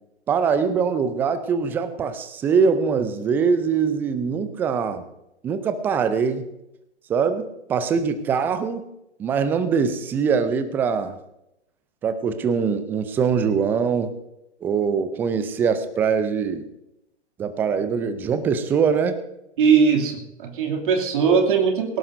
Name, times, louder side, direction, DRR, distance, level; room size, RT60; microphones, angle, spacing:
voice 1, 0.3-5.0 5.4-6.4 7.1-8.9 9.2-11.1 12.0-14.1 14.6-16.7 17.4-19.2, right 6 dB, 5° right, 11 dB, 0.4 m, -23 dB
voice 2, 19.6-22.0, right 6 dB, 50° right, 2 dB, 2.7 m, -20 dB
19.0 x 17.5 x 2.6 m, 0.86 s
figure-of-eight pair, 115°, 34 cm